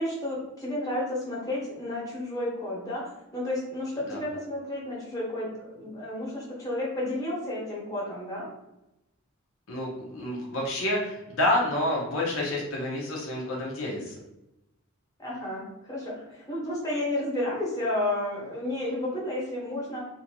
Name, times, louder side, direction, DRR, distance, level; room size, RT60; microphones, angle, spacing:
voice 1, 0.0-8.5 15.2-20.1, left 1 dB, 15° left, -5 dB, 1.1 m, -32 dB
voice 2, 9.7-14.1, left 1 dB, 70° left, -3 dB, 0.7 m, -29 dB
2.7 x 2.5 x 2.9 m, 0.91 s
head